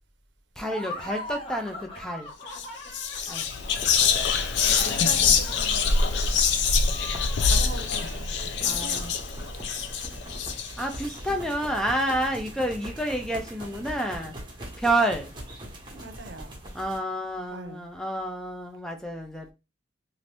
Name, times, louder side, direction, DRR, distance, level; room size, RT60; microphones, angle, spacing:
Laughter, 0.6-8.9, left 1 dB, 30° left, 0.8 m, -41 dB
voice 1, 0.6-2.3 3.3-3.5 8.6-9.1 10.8-14.4 14.8-15.3 16.7-19.5, right 1 dB, 5° left, 0.4 m, -29 dB
Whispering, 2.5-2.7 2.9-11.0, left 5 dB, 65° left, 0.4 m, -25 dB
voice 2, 3.1-3.4 4.6-5.9 7.4-9.1 15.9-16.6 17.5-17.8, right 3 dB, 70° right, 0.6 m, -41 dB
sound 1, 3.3-17.0, right 1 dB, 25° right, 0.9 m, -41 dB
2.7 x 2.5 x 3.3 m
head